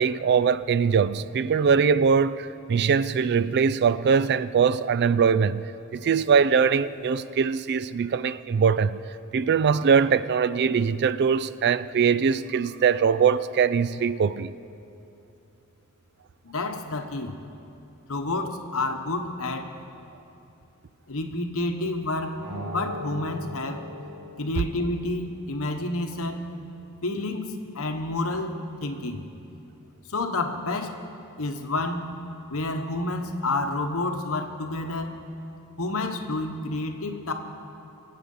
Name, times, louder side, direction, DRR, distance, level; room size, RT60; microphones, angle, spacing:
voice 1, 0.0-9.0 9.3-14.5, right 6 dB, 50° right, 0.4 m, -22 dB
voice 2, 16.4-17.3 18.1-19.7 21.1-23.8 24.4-26.6 27.0-29.2 30.1-31.0 31.4-32.1 32.5-35.2 35.8-37.3, left 2 dB, 65° left, 1.1 m, -29 dB
sound 1, 22.4-25.1, equal, 80° right, 1.9 m, -38 dB
23.5 x 8.5 x 5.5 m
head